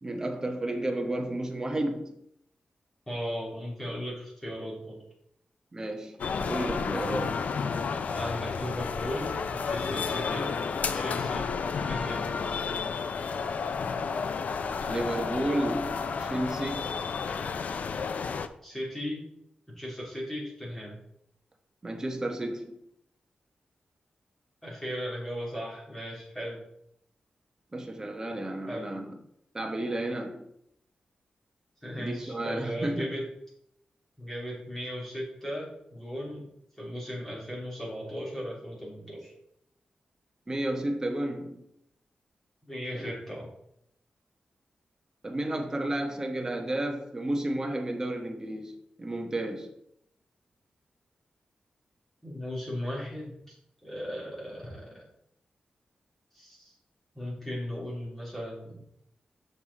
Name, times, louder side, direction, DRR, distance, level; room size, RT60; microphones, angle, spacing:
voice 1, 0.0-2.1 5.7-6.2 6.5-7.4 14.9-17.0 21.8-22.8 27.7-29.2 29.5-30.4 32.0-33.2 40.5-41.6 42.9-43.1 45.2-49.7, right 1 dB, 20° right, 1.2 m, -32 dB
voice 2, 3.1-5.0 8.0-10.6 10.9-11.5 11.7-12.3 18.6-19.2 19.7-21.0 24.6-26.6 28.7-28.9 31.8-33.3 34.2-36.5 36.8-39.3 42.7-43.5 52.2-53.5 53.8-55.0 56.3-56.7 57.1-58.8, equal, 10° left, 3.2 m, -37 dB
sound 1, 6.2-18.5, left 5 dB, 65° left, 0.5 m, -31 dB
7.1 x 6.8 x 4.2 m
wide cardioid pair, 155°, 3 cm